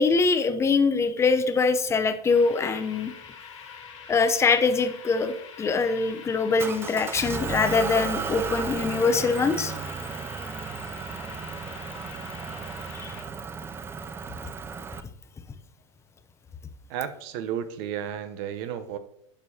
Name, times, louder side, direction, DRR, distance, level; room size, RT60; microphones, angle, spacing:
voice 1, 0.0-3.1 4.1-9.7 13.0-13.1, left 4 dB, 15° left, 9 dB, 0.7 m, -23 dB
sound 1, 2.3-13.2, left 6 dB, 85° left, 2.0 m, -45 dB
Motor vehicle (road) / Engine, 6.6-15.0, right 5 dB, 15° right, 0.4 m, -34 dB
voice 2, 16.9-19.0, right 9 dB, 55° right, 10 dB, 0.8 m, -32 dB
11.5 x 4.6 x 2.8 m, 0.73 s
hypercardioid pair, 115°, 16 cm